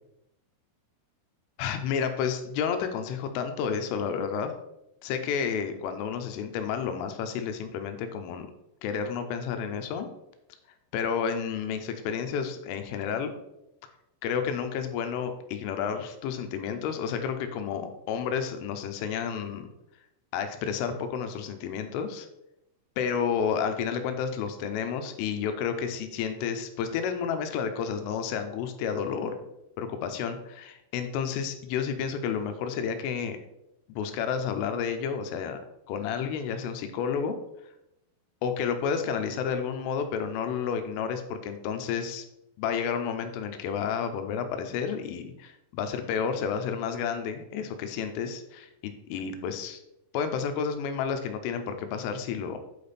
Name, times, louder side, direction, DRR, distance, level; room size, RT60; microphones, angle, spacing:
voice 1, 1.6-4.5 5.0-8.5 8.8-10.1 10.9-13.3 14.2-19.7 20.3-22.3 23.0-29.4 29.8-33.4 33.9-35.6 35.9-37.4 38.4-42.2 42.6-49.8 50.1-52.6, left 7 dB, 85° left, 7 dB, 3.3 m, -31 dB
8.7 x 5.2 x 4.1 m, 0.85 s
omnidirectional pair, 5.7 m